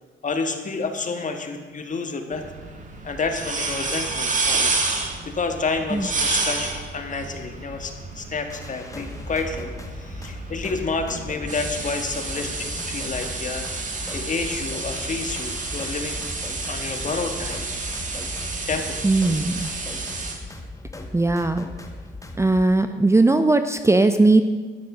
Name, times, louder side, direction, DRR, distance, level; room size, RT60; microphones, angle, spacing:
voice 1, 0.2-2.5 3.0-4.7 5.3-9.7 9.9-13.7 14.1-16.2 16.7-17.6 18.6-19.0, left 4 dB, 40° left, 5 dB, 1.8 m, -29 dB
sound 1, 2.3-20.3, right 3 dB, 40° right, 2.3 m, -30 dB
sound 2, 8.5-22.6, left 2 dB, 15° left, 1.6 m, -38 dB
voice 2, 19.0-19.7 21.1-21.7 22.4-24.4, right 2 dB, 15° right, 9 dB, 0.7 m, -18 dB
12.5 x 9.7 x 6.3 m, 1.4 s
cardioid pair, 90°, 20 cm